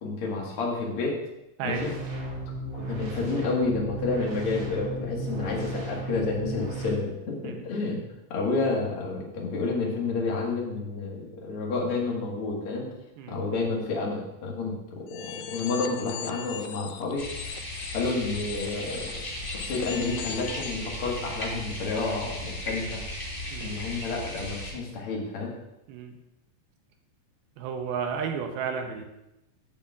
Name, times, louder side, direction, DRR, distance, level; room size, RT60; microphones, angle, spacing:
voice 1, 0.0-1.2 1.6-1.9 2.7-8.0 8.3-12.9 13.3-17.2 17.9-19.1 19.5-23.0 23.6-25.5, left 3 dB, 50° left, -2 dB, 1.7 m, -30 dB
sound 1, 1.6-6.9, right 1 dB, 50° right, 1.9 m, -34 dB
sound 2, 15.1-20.9, left 10 dB, 85° left, 2.6 m, -40 dB
sound 3, 17.2-24.7, left 1 dB, 25° left, 2.0 m, -36 dB
voice 2, 27.6-29.1, right 6 dB, 80° right, 5 dB, 2.5 m, -32 dB
14.0 x 7.0 x 2.4 m, 0.90 s
omnidirectional pair, 4.7 m